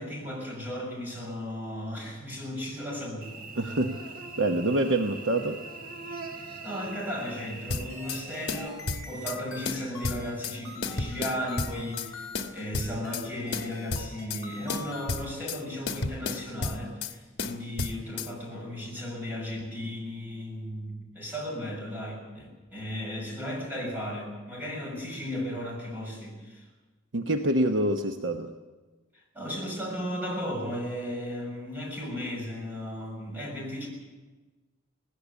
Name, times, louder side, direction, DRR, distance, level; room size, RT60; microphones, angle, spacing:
voice 1, 0.0-3.3 6.3-26.7 29.3-33.9, equal, 10° right, -2 dB, 6.8 m, -35 dB
Cricket / Buzz, 3.2-8.7, right 3 dB, 45° right, 1.5 m, -42 dB
voice 2, 3.5-5.6 27.1-28.5, right 1 dB, 65° right, 5 dB, 1.1 m, -26 dB
sound 1, 7.7-8.2 8.5-9.4 9.7-10.6 10.8-12.1 12.4-13.3 13.5-14.4 14.7-15.6 15.9-17.1 17.4-18.3, left 3 dB, 60° left, 1.3 m, -32 dB
sound 2, 7.9-15.1, left 2 dB, 15° left, 5.0 m, -44 dB
19.5 x 16.5 x 8.4 m, 1.2 s
head